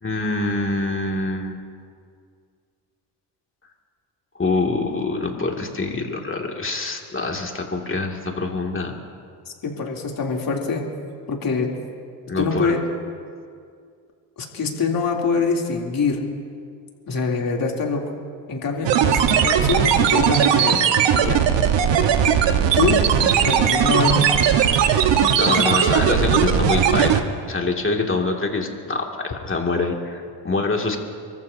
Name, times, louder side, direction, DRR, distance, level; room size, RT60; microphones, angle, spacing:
voice 1, 0.0-1.6 4.4-8.9 12.3-12.7 25.4-31.0, left 3 dB, 25° left, 1 dB, 2.5 m, -25 dB
voice 2, 9.6-10.8 11.3-11.7 12.4-12.8 14.4-16.2 17.1-18.0 18.5-21.4 22.7-23.0 23.4-24.6 25.5-25.8, left 4 dB, 50° left, -1 dB, 3.3 m, -24 dB
sound 1, 18.8-27.2, right 8 dB, 70° right, 1.5 m, -18 dB
29.5 x 14.5 x 2.8 m, 2.2 s
supercardioid pair, 65°, 45 cm